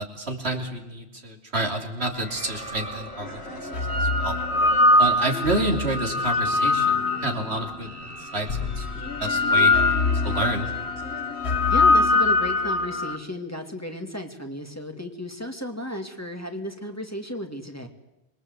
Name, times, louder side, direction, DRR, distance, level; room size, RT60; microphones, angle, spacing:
voice 1, 0.0-4.4 5.0-10.0 10.2-10.7, right 2 dB, 80° right, 3 dB, 3.4 m, -29 dB
sound 1, 2.1-10.4, right 2 dB, 35° right, 2.3 m, -42 dB
sound 2, 2.4-2.5 3.5-7.7 8.5-13.2, left 2 dB, 80° left, 1.8 m, -22 dB
sound 3, 3.2-12.3, left 4 dB, 65° left, 2.4 m, -41 dB
voice 2, 11.7-17.9, left 1 dB, 15° left, 4 dB, 2.5 m, -34 dB
27.0 x 22.5 x 8.1 m, 0.96 s
omnidirectional pair, 1.1 m